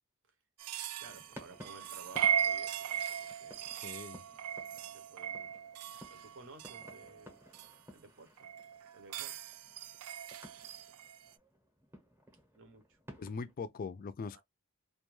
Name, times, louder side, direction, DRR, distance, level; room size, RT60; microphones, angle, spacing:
sound 1, 0.6-7.7 8.4-11.3, right 9 dB, 80° right, 0.3 m, -38 dB
sound 2, 1.0-13.5, equal, 10° right, 0.7 m, -56 dB
voice 1, 1.0-3.7 4.9-5.5 6.1-7.5 7.9-8.5 8.9-9.4 12.6-13.0 14.3-14.4, right 3 dB, 60° right, 0.7 m, -55 dB
voice 2, 3.8-4.2 13.1-14.4, left 4 dB, 40° left, 0.3 m, -41 dB
2.2 x 2.2 x 3.1 m
head